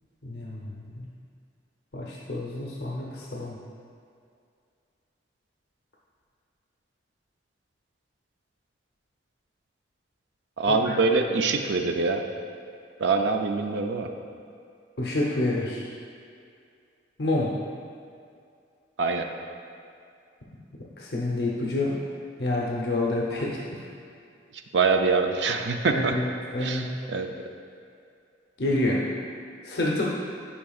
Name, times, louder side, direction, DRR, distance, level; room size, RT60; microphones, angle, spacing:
voice 1, 0.2-0.6 0.9-1.1 1.9-3.6 10.7-10.9 15.0-15.9 17.2-17.5 21.0-22.0 22.4-23.6 25.9-26.9 28.6-29.0 29.6-30.1, left 2 dB, 60° left, -3 dB, 0.7 m, -28 dB
voice 2, 10.6-12.2 13.0-14.1 19.0-19.3 24.7-26.2 26.6-27.3, right 4 dB, 75° right, 5 dB, 0.5 m, -24 dB
10.0 x 5.3 x 2.4 m, 2.4 s
head